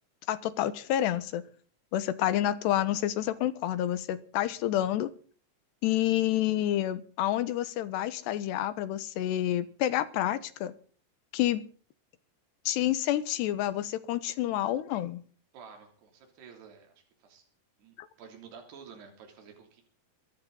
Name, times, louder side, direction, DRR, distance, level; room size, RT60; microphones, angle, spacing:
voice 1, 0.3-1.4 1.9-5.1 5.8-10.7 11.3-11.6 12.7-15.2 18.0-18.1, left 13 dB, 85° left, 14 dB, 3.3 m, -29 dB
voice 2, 15.5-17.4 17.8-19.8, right 6 dB, 75° right, 2 dB, 5.3 m, -51 dB
23.0 x 13.0 x 4.1 m, 0.43 s
omnidirectional pair, 4.8 m